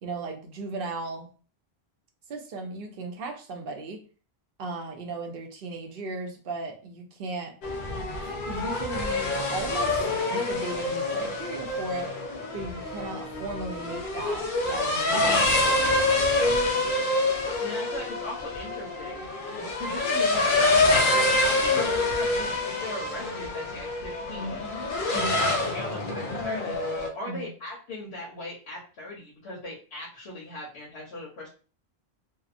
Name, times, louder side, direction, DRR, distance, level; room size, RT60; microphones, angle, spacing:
voice 1, 0.0-1.3 2.3-4.0 4.6-7.5 8.4-12.2 12.5-16.3 25.1-25.4 27.2-27.5, right 3 dB, 65° right, 3 dB, 0.8 m, -36 dB
sound 1, 7.6-27.1, left 2 dB, 60° left, 0.6 m, -26 dB
voice 2, 17.6-19.2 19.6-24.8 25.1-26.8 27.1-31.5, left 2 dB, 85° left, -5 dB, 1.0 m, -39 dB
2.7 x 2.0 x 2.4 m, 0.38 s
omnidirectional pair, 1.1 m